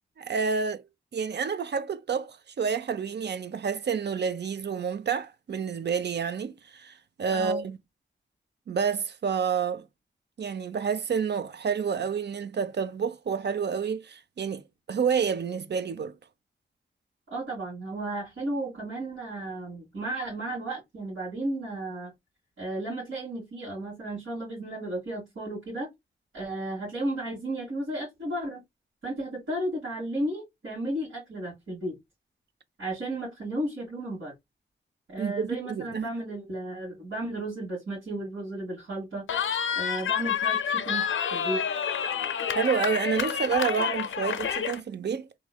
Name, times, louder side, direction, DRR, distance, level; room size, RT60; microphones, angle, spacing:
voice 1, 0.2-0.8 1.1-7.8 8.7-9.9 10.4-16.1 35.2-36.1 42.5-45.3, right 6 dB, 55° right, 0.6 m, -29 dB
voice 2, 7.3-7.6 17.3-22.1 22.6-25.9 26.3-28.6 29.0-32.0 32.8-34.3 35.1-39.2 39.7-41.6, right 1 dB, 90° right, 2.5 m, -34 dB
Cheering, 39.3-44.8, left 8 dB, 75° left, 0.5 m, -28 dB
3.7 x 3.1 x 2.3 m
cardioid pair, 45°, 20 cm